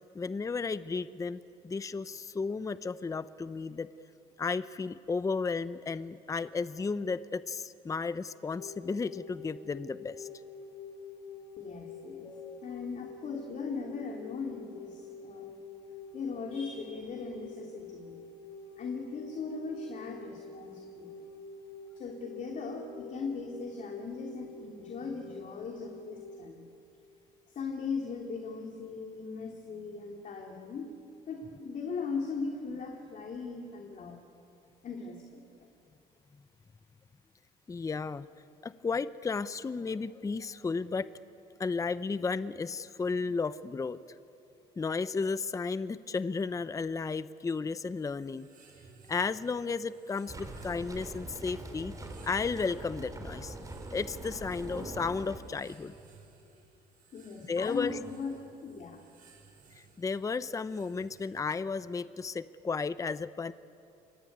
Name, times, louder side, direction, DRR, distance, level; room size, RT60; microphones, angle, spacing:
voice 1, 0.1-1.4 1.6-3.9 4.4-10.3 12.2-12.6 37.7-38.3 38.6-41.1 41.6-44.0 44.8-48.5 49.1-51.9 52.2-53.6 53.9-55.9 57.5-58.0 59.8-63.5, left 4 dB, 20° left, 14 dB, 0.6 m, -33 dB
sound 1, 8.4-26.5, left 4 dB, 70° left, 2.9 m, -47 dB
voice 2, 11.6-12.3 12.6-15.6 16.1-18.2 18.8-21.1 22.0-26.6 27.5-30.9 31.3-34.2 34.8-35.4 57.1-59.0, left 4 dB, 50° left, 1 dB, 3.0 m, -39 dB
sound 2, 47.8-61.7, right 4 dB, 55° right, 6.6 m, -58 dB
sound 3, 50.3-55.4, right 2 dB, 20° right, 3.6 m, -43 dB
26.5 x 23.5 x 9.4 m, 2.7 s
cardioid pair, 110°, 17 cm